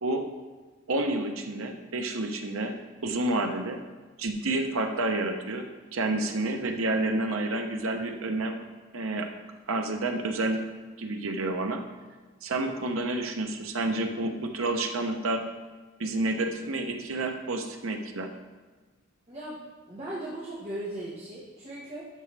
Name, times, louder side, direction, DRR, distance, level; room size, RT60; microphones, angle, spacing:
voice 1, 0.9-2.7 3.0-3.8 4.2-5.7 5.9-8.6 8.9-9.3 9.7-10.6 11.0-11.8 12.4-15.5 16.0-18.3, right 2 dB, 80° right, 4 dB, 0.9 m, -29 dB
voice 2, 19.3-22.1, right 1 dB, 30° right, -7 dB, 1.5 m, -38 dB
12.0 x 6.2 x 3.4 m, 1.4 s
head